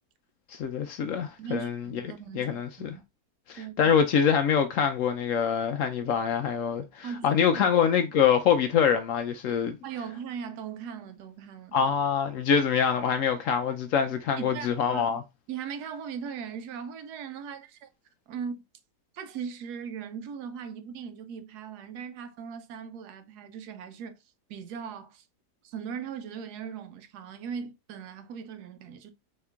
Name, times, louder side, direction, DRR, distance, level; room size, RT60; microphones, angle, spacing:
voice 1, 0.5-2.0 2.3-2.9 3.5-9.8 11.7-15.2, left 7 dB, 70° left, 0.7 m, -25 dB
voice 2, 1.4-3.0 3.5-4.0 7.0-7.6 9.8-11.8 14.4-15.2 15.5-17.9 18.3-18.6 19.1-24.2 24.5-25.2 25.6-29.1, right 7 dB, 75° right, 1.2 m, -39 dB
4.3 x 2.9 x 3.3 m
omnidirectional pair, 1.8 m